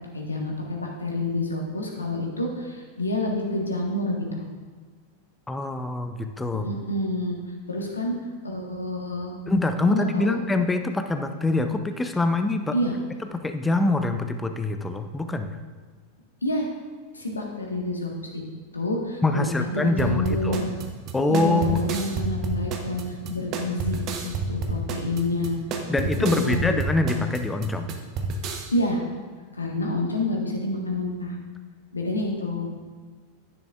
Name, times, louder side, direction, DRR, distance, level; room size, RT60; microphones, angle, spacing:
voice 1, 0.1-4.4 6.6-7.4 7.7-8.1 8.4-9.3 9.9-10.4 12.7-12.9 16.4-16.7 17.1-18.4 18.7-20.8 21.3-25.6 26.2-26.7 28.7-29.0 29.5-31.3 31.9-32.7, left 2 dB, 80° left, 0 dB, 1.5 m, -28 dB
voice 2, 5.5-6.7 9.5-12.7 13.3-15.5 19.2-20.6 21.1-21.8 25.9-27.9, left 2 dB, 10° left, 7 dB, 0.6 m, -24 dB
sound 1, 20.0-28.7, right 3 dB, 35° right, 0.9 m, -30 dB
10.5 x 9.9 x 2.5 m, 1.5 s
figure-of-eight pair, 90°, 0 cm